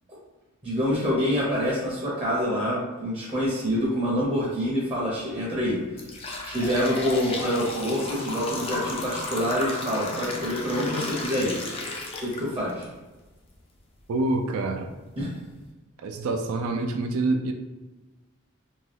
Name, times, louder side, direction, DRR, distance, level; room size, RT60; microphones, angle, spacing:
voice 1, 0.6-6.1 6.4-11.6 12.2-12.9 15.2-15.3, equal, 25° right, -6 dB, 0.6 m, -26 dB
sound 1, 5.0-5.2 5.7-12.8 13.3-13.4 14.2-14.3 14.9-15.0 15.4-15.6, left 2 dB, 25° left, 0.3 m, -33 dB
voice 2, 14.1-14.9 16.0-17.5, right 2 dB, 85° right, 4 dB, 0.3 m, -26 dB
2.7 x 2.2 x 3.2 m, 1.2 s
head